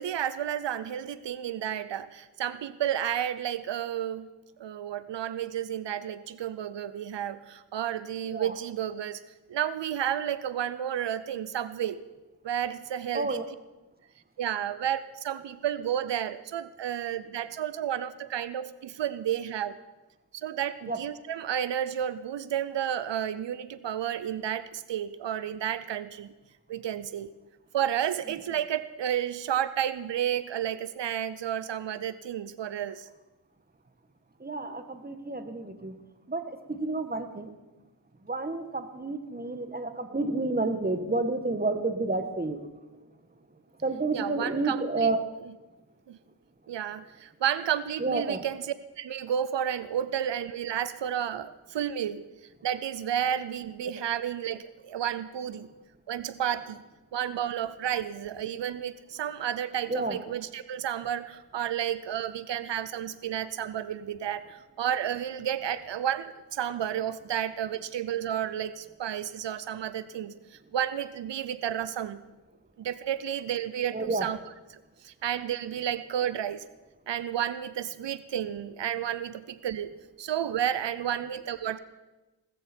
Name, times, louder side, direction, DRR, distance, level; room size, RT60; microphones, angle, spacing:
voice 1, 0.0-4.3 4.6-9.2 9.5-12.0 12.4-13.4 14.4-19.8 20.3-26.3 26.7-27.3 27.7-33.1 44.1-45.1 46.1-46.2 46.7-52.3 52.6-55.7 56.1-56.8 57.1-72.2 72.8-74.4 74.7-76.6 77.1-79.9 80.2-81.8, right 10 dB, 90° right, 15 dB, 0.6 m, -31 dB
voice 2, 34.4-35.9 36.3-37.5 38.3-42.6 43.8-45.2 48.0-48.4 59.9-60.2 73.9-74.3, right 3 dB, 20° right, 8 dB, 1.5 m, -30 dB
18.5 x 14.0 x 4.4 m, 1.1 s
cardioid pair, 55°, 42 cm